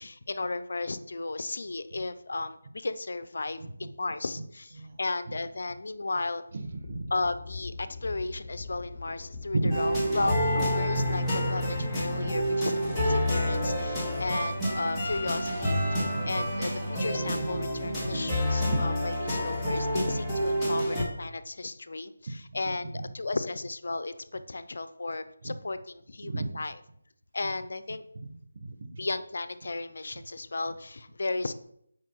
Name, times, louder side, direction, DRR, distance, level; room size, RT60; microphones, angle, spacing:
voice 1, 0.0-6.4 7.1-11.2 11.5-26.7 27.3-28.0 29.0-31.5, left 3 dB, 65° left, 12 dB, 0.5 m, -34 dB
voice 2, 3.6-3.9 4.8-5.0 5.3-5.4 6.5-7.1 9.5-10.0 10.9-11.4 11.8-11.9 12.2-12.3 16.0-16.5 18.0-18.2 18.6-18.8 20.6-20.7 22.5-23.1 25.4-25.5 26.2-26.6 28.1-28.3 28.5-29.1, right 2 dB, 50° right, 5 dB, 0.9 m, -34 dB
sound 1, 6.6-16.0, left 3 dB, 25° left, 1.4 m, -43 dB
sound 2, 9.7-21.0, equal, 5° left, 1.4 m, -28 dB
7.3 x 4.9 x 3.0 m, 0.71 s
figure-of-eight pair, 160°, 0 cm